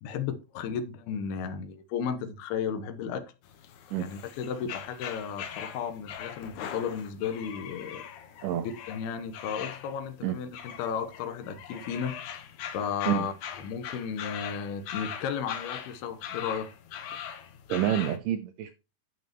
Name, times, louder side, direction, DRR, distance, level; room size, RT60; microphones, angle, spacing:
voice 1, 0.0-3.3 4.0-8.0 8.9-12.2 12.7-16.7, left 7 dB, 85° left, 2.9 m, -34 dB
sound 1, 3.4-18.2, left 9 dB, 65° left, 2.2 m, -41 dB
voice 2, 17.7-18.7, right 11 dB, 80° right, 1.9 m, -28 dB
11.5 x 5.6 x 3.0 m
omnidirectional pair, 4.4 m